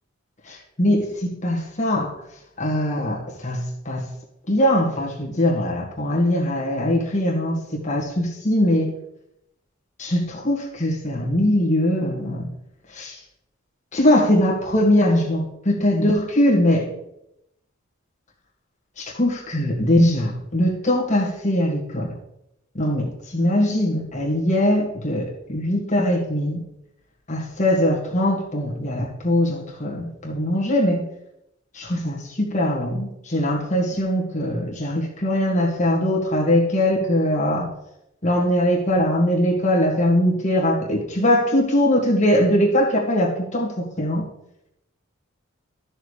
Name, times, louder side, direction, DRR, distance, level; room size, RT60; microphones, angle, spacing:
voice 1, 0.5-2.2 2.6-4.1 4.5-8.9 10.0-12.5 12.9-13.2 13.9-16.9 19.0-22.1 22.8-26.6 27.3-31.1 31.7-37.7 38.2-44.3, left 1 dB, 35° left, -2 dB, 1.8 m, -21 dB
13.0 x 6.5 x 3.3 m, 0.84 s
head